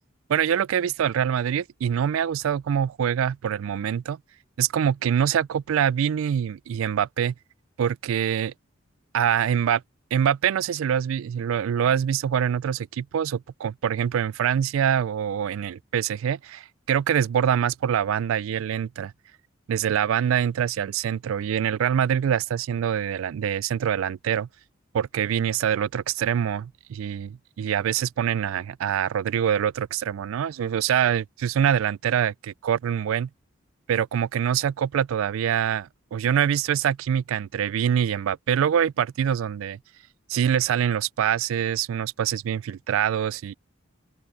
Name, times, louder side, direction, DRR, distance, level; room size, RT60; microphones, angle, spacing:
voice 1, 0.3-4.2 4.6-7.3 7.8-8.5 9.1-9.8 10.1-19.1 19.7-24.5 24.9-33.3 33.9-39.8 40.3-43.5, right 8 dB, 85° right, 0.3 m, -25 dB
open air
head